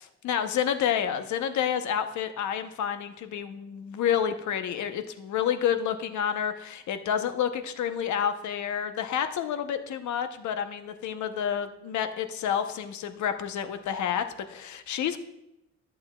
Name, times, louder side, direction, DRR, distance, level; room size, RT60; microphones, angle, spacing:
voice 1, 0.0-15.2, left 9 dB, 70° left, 9 dB, 0.8 m, -29 dB
13.5 x 7.8 x 2.2 m, 0.87 s
cardioid pair, 90°, 30 cm